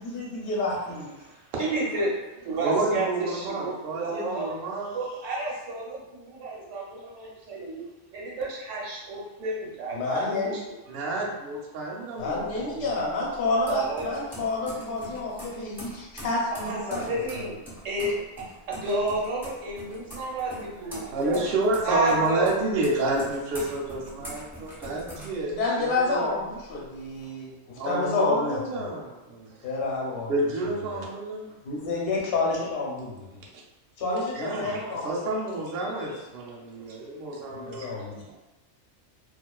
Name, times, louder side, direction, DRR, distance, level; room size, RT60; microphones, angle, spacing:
voice 1, 0.0-1.1 9.9-10.6 12.2-17.4 25.4-28.9 29.6-30.3 30.6-31.0 31.6-33.3 34.0-35.1 37.5-38.4, left 3 dB, 55° left, -4 dB, 0.8 m, -29 dB
voice 2, 1.6-4.5 4.9-7.8 8.1-10.8 13.7-14.2 16.7-17.6 17.8-21.4 21.8-22.5 35.8-36.1 36.8-37.0 37.2-38.4, right 2 dB, 75° right, -3 dB, 1.0 m, -31 dB
voice 3, 2.6-5.0 10.9-12.9 21.1-26.3 27.8-29.6 30.3-31.5 34.3-38.0, right 2 dB, 60° right, -3 dB, 0.7 m, -29 dB
sound 1, 12.2-26.0 26.4-27.2, equal, 5° right, 0.4 m, -44 dB
2.4 x 2.4 x 2.2 m, 1.1 s
omnidirectional pair, 1.3 m